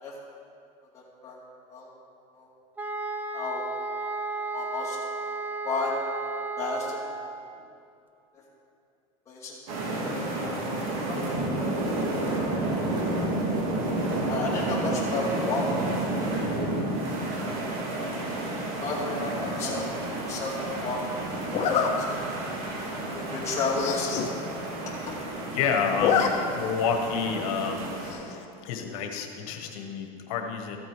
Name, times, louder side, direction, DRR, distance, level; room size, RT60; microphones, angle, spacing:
voice 1, 0.9-1.4 1.7-1.9 2.3-2.5 3.3-3.6 4.5-5.1 5.6-5.9 6.6-7.0 9.3-9.6 11.1-11.6 12.0-12.1 14.3-15.7 15.9-16.0 17.4-17.5 18.8-19.9 20.3-21.0 21.3-21.4 22.0-22.2 23.0-24.3, left 4 dB, 15° left, -8 dB, 2.4 m, -32 dB
sound 1, 2.8-7.5, right 3 dB, 10° right, 0.5 m, -33 dB
sound 2, 9.7-28.1, right 2 dB, 85° right, 2.5 m, -31 dB
Zipper (clothing), 19.6-20.0 21.5-21.9 22.5-22.6 23.0-23.1 23.3-23.4 23.7-24.3 24.6-24.7 24.9-25.5 25.8-26.3 26.6-26.7 28.1-28.4, left 8 dB, 40° left, 1.1 m, -27 dB
voice 2, 25.5-27.9 28.6-30.8, left 6 dB, 75° left, 4 dB, 1.4 m, -29 dB
14.0 x 7.8 x 5.1 m, 2.5 s
supercardioid pair, 150°, 18 cm